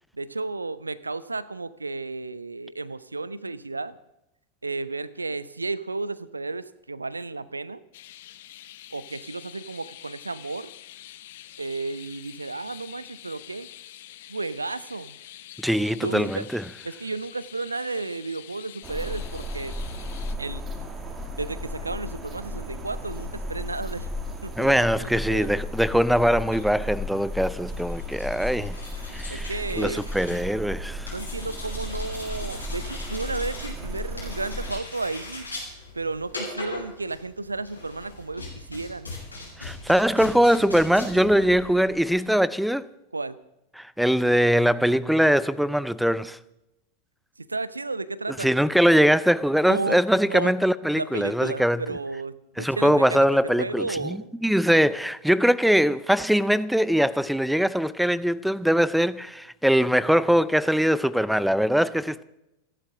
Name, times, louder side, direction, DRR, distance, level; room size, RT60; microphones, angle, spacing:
voice 1, 0.2-4.0 4.6-7.8 8.9-10.7 11.6-13.7 14.3-15.2 16.0-16.5 16.8-19.7 20.4-20.6 21.4-24.1 24.4-25.6 29.3-30.0 31.1-35.5 35.9-39.1 43.1-43.4 47.4-48.5 49.7-50.0 50.2-50.5 50.9-53.3 53.6-54.3, right 3 dB, 80° right, 0.7 m, -33 dB
sound 1, 7.9-20.3, left 13 dB, 55° left, 1.0 m, -46 dB
voice 2, 15.6-16.6 24.6-28.8 29.1-31.1 39.6-42.9 43.8-46.4 48.3-52.0 52.6-62.2, equal, ahead, 0.5 m, -22 dB
sound 2, 18.8-34.8, left 1 dB, 20° right, 2.5 m, -34 dB
sound 3, 26.3-42.3, left 2 dB, 85° left, 7.6 m, -41 dB
29.5 x 11.5 x 3.8 m
figure-of-eight pair, 90°, 0 cm